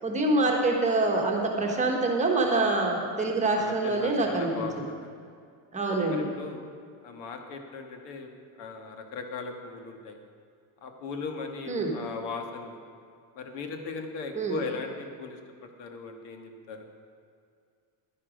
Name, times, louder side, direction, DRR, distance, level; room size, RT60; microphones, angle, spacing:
voice 1, 0.0-4.9 5.7-6.3 11.7-11.9 14.3-14.6, right 2 dB, 15° right, 0 dB, 1.2 m, -26 dB
voice 2, 3.5-5.1 6.1-6.6 7.0-8.3 8.6-10.2 10.8-12.8 13.3-16.9, left 4 dB, 70° left, 4 dB, 1.5 m, -38 dB
11.0 x 10.0 x 5.0 m, 2.2 s
cardioid pair, 160°, 43 cm